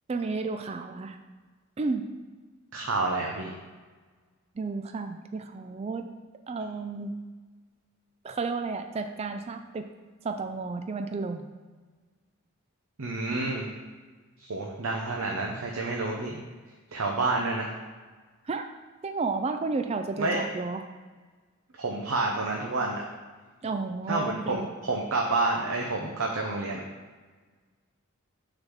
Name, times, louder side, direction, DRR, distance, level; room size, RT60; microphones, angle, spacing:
voice 1, 0.1-1.2 1.8-2.1 4.6-6.1 6.5-7.1 8.2-9.9 10.2-11.5 18.5-18.7 19.0-20.8 23.6-24.7, right 4 dB, 30° right, 7 dB, 0.3 m, -32 dB
voice 2, 2.7-3.5 13.0-13.7 14.4-16.4 16.9-17.8 20.2-20.5 21.8-23.0 24.1-26.8, right 2 dB, 70° right, 0 dB, 0.8 m, -29 dB
6.4 x 4.1 x 6.1 m, 1.4 s
head